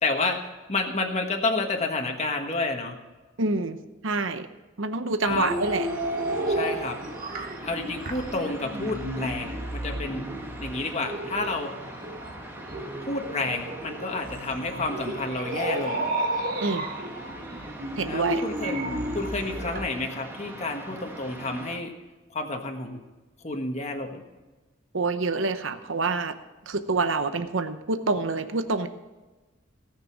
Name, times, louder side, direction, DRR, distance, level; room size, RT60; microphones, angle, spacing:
voice 1, 0.0-0.4 0.7-3.0 5.2-5.6 6.5-7.0 7.3-10.3 10.6-11.7 13.1-16.2 18.1-18.8 19.1-21.9 22.3-23.0 23.4-24.2, left 3 dB, 35° left, 2 dB, 1.4 m, -30 dB
voice 2, 3.4-3.8 4.0-4.5 4.8-5.9 16.6-16.9 18.0-18.4 24.9-26.3 26.7-28.9, right 3 dB, 70° right, 9 dB, 0.9 m, -27 dB
sound 1, 5.3-19.9, right 1 dB, 45° right, 1.5 m, -32 dB
sound 2, 5.6-21.8, right 1 dB, 10° right, 1.7 m, -42 dB
18.0 x 6.7 x 6.3 m, 1.2 s
head